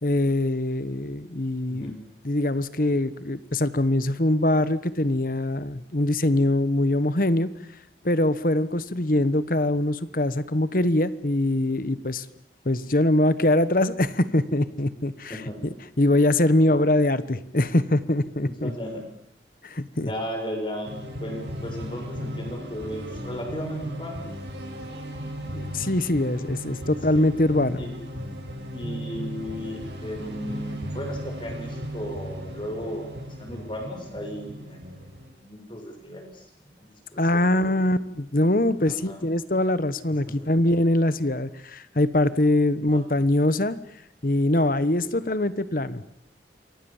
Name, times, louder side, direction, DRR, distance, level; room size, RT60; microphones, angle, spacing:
voice 1, 0.0-1.9 2.2-7.5 8.0-12.2 12.6-18.7 19.6-20.1 25.5-27.8 37.2-43.8 44.2-46.0, left 1 dB, 50° left, 15 dB, 1.2 m, -23 dB
voice 2, 1.7-2.0 15.3-15.6 16.6-16.8 18.4-19.0 19.9-20.9 21.2-24.3 27.1-27.3 27.8-28.0 28.7-35.1 35.4-36.5 36.8-37.8 38.9-39.2 40.4-40.5 42.9-43.1, equal, 30° left, 3 dB, 6.7 m, -35 dB
sound 1, 20.8-35.3, equal, 75° right, 7.6 m, -36 dB
28.0 x 23.5 x 7.4 m, 0.72 s
head